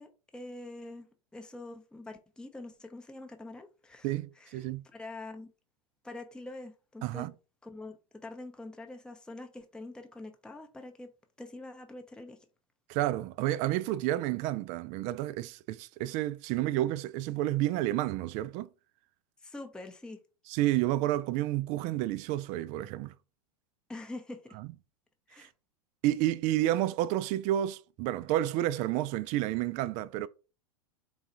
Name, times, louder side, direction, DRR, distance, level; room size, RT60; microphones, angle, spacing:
voice 1, 0.0-5.5 6.0-7.3 7.6-11.1 11.4-12.4 19.4-20.2 23.9-24.6 25.3-25.5, left 2 dB, 5° left, 0.6 m, -45 dB
voice 2, 4.0-4.8 7.0-7.3 12.9-18.7 20.5-23.1 25.4-25.5 26.0-30.3, right 14 dB, 40° right, 0.4 m, -30 dB
3.9 x 2.4 x 4.2 m
hypercardioid pair, 95°, 18 cm